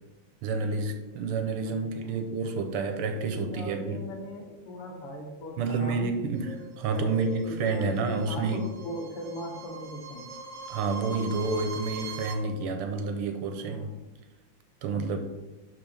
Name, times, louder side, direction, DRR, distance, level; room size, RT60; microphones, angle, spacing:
voice 1, 0.4-4.0 5.6-8.6 10.7-13.9 14.8-15.2, right 4 dB, 85° right, 6 dB, 1.8 m, -29 dB
voice 2, 3.1-6.1 6.9-10.3 13.6-13.9 14.9-15.2, left 1 dB, 90° left, 1 dB, 2.3 m, -39 dB
sound 1, 6.3-12.3, right 4 dB, 30° right, 0.7 m, -42 dB
11.5 x 3.9 x 3.5 m, 1.1 s
omnidirectional pair, 2.4 m